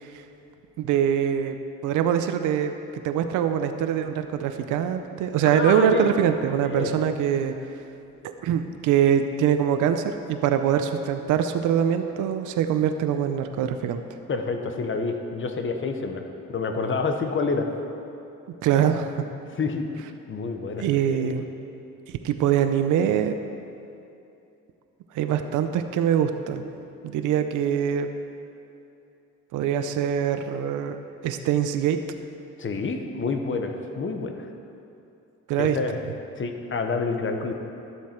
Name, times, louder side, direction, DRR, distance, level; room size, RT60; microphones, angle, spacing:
voice 1, 0.8-1.6 1.8-7.5 8.4-14.0 18.6-19.1 20.8-21.4 22.2-23.3 25.1-26.7 27.0-28.1 29.5-31.0 31.2-32.0 35.5-35.8, right 9 dB, 90° right, 8 dB, 0.6 m, -23 dB
voice 2, 5.4-6.1 6.7-7.0 14.3-16.3 16.5-17.7 19.5-19.9 20.3-21.4 32.6-34.5 35.6-36.0 36.4-37.5, left 4 dB, 40° left, 5 dB, 1.0 m, -28 dB
12.0 x 7.3 x 4.4 m, 2.7 s
cardioid pair, 90°, 30 cm